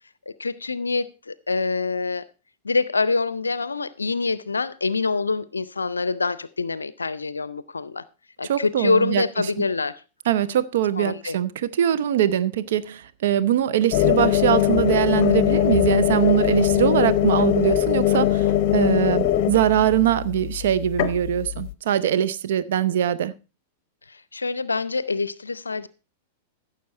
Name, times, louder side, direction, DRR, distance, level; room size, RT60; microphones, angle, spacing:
voice 1, 0.4-2.2 2.6-8.0 8.4-10.0 11.0-11.4 24.1-25.9, left 4 dB, 85° left, 0.5 m, -25 dB
voice 2, 8.5-9.2 10.3-18.5 18.7-23.3, right 11 dB, 60° right, 0.7 m, -22 dB
sound 1, 13.9-21.7, left 12 dB, 45° left, 0.8 m, -21 dB
15.0 x 6.6 x 4.3 m
figure-of-eight pair, 95°, 0 cm